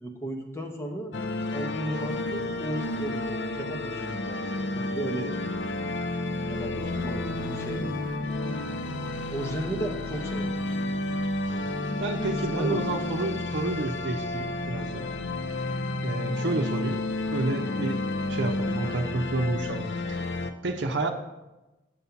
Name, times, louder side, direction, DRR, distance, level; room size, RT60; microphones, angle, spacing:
voice 1, 0.0-1.1 1.5-5.6 6.5-8.1 9.3-10.6 11.5-11.7 12.4-12.8, right 1 dB, 15° left, 2 dB, 0.9 m, -35 dB
sound 1, 1.1-20.5, left 2 dB, 90° left, 0.5 m, -31 dB
voice 2, 12.0-15.1 16.0-17.0 17.3-18.0 18.3-20.2 20.6-21.1, right 2 dB, 80° right, 3 dB, 0.7 m, -30 dB
6.9 x 5.5 x 5.8 m, 1.0 s
head